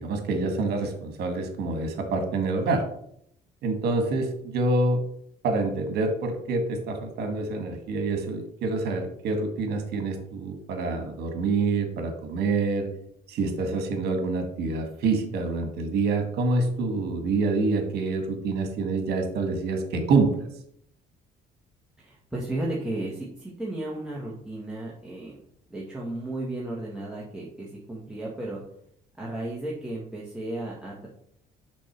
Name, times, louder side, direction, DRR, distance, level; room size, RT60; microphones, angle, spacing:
voice 1, 0.0-2.8 3.6-5.0 5.4-12.9 13.3-20.5, right 3 dB, 75° right, 5 dB, 1.6 m, -26 dB
voice 2, 22.0-25.4 25.7-28.6 29.2-31.1, right 1 dB, 5° right, -6 dB, 1.5 m, -34 dB
6.3 x 3.7 x 5.9 m, 0.69 s
cardioid pair, 110°, 17 cm